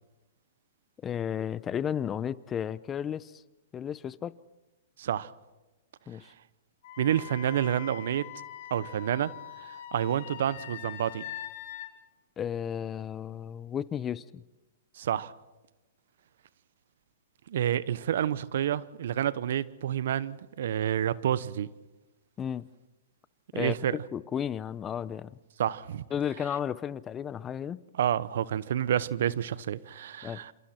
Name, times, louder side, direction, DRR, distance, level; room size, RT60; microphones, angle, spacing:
voice 1, 1.0-3.4 3.7-4.3 6.1-6.3 12.4-14.4 22.4-22.7 23.5-25.4 26.1-27.8 30.2-30.4, left 8 dB, 20° left, 0.8 m, -33 dB
voice 2, 5.0-5.3 7.0-8.3 8.7-9.3 9.6-11.2 15.0-15.3 17.5-21.7 23.5-24.0 25.6-26.0 28.0-30.5, right 10 dB, 65° right, 1.0 m, -29 dB
Wind instrument woodwind instrument, 6.8-11.9, left 11 dB, 55° left, 3.4 m, -43 dB
27.5 x 27.5 x 4.5 m
hypercardioid pair, 120°, 0 cm